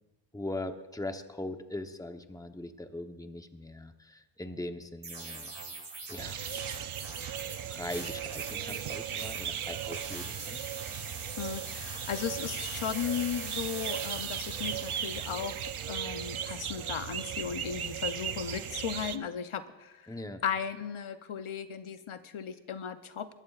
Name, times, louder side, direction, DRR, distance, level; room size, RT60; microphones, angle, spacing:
voice 1, 0.3-5.5 6.1-6.4 7.7-10.6 20.1-20.4, left 1 dB, 5° left, 7 dB, 0.9 m, -40 dB
sound 1, 5.0-16.4, right 3 dB, 60° right, 1.9 m, -43 dB
sound 2, 6.2-19.2, right 9 dB, 85° right, 0.6 m, -37 dB
voice 2, 11.4-15.6 15.9-23.3, left 7 dB, 80° left, 10 dB, 0.7 m, -36 dB
21.0 x 15.0 x 2.4 m, 1.1 s
wide cardioid pair, 60°, 48 cm